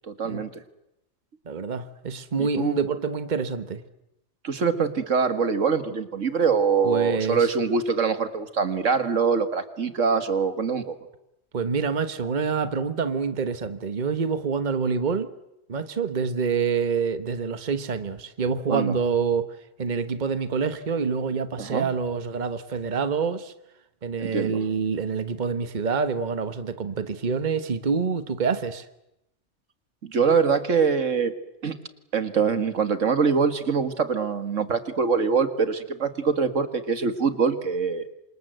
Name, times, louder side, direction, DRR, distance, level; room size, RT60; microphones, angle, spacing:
voice 1, 0.1-0.5 2.4-2.9 4.4-11.0 18.7-19.0 21.6-21.9 24.2-24.6 30.0-31.3 31.6-31.8 32.1-38.1, right 5 dB, 85° right, 10 dB, 2.2 m, -24 dB
voice 2, 1.5-3.8 6.8-7.5 11.5-15.3 15.7-19.5 19.8-23.5 24.0-28.9, right 5 dB, 40° right, 11 dB, 1.3 m, -26 dB
28.0 x 26.5 x 7.9 m, 0.85 s
omnidirectional pair, 1.3 m